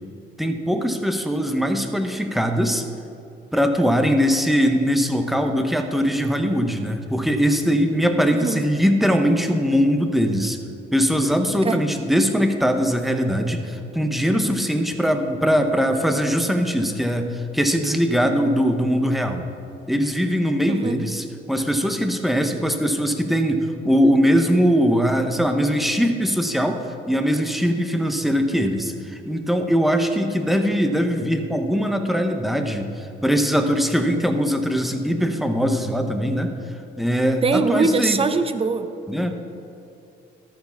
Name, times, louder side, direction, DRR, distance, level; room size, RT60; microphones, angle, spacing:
voice 1, 0.4-2.9 3.5-10.6 10.9-19.4 19.9-26.8 27.1-36.5 37.0-38.2 39.1-39.3, equal, ahead, 5 dB, 0.9 m, -21 dB
voice 2, 8.2-8.6 11.6-11.8 20.7-21.0 37.4-38.9, right 4 dB, 30° right, 10 dB, 0.6 m, -22 dB
13.0 x 4.7 x 5.7 m, 2.6 s
cardioid pair, 90°, 20 cm